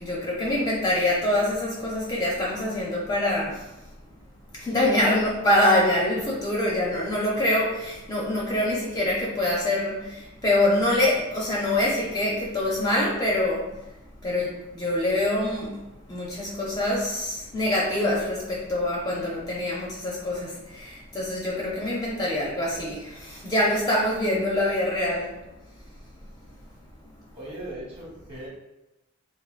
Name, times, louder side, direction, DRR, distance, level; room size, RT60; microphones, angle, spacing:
voice 1, 0.0-3.7 4.5-13.9 14.2-15.8 16.1-25.4, left 1 dB, 20° left, -4 dB, 0.5 m, -25 dB
voice 2, 27.3-28.5, right 1 dB, 30° right, -5 dB, 1.2 m, -38 dB
3.8 x 2.5 x 2.4 m, 0.97 s
head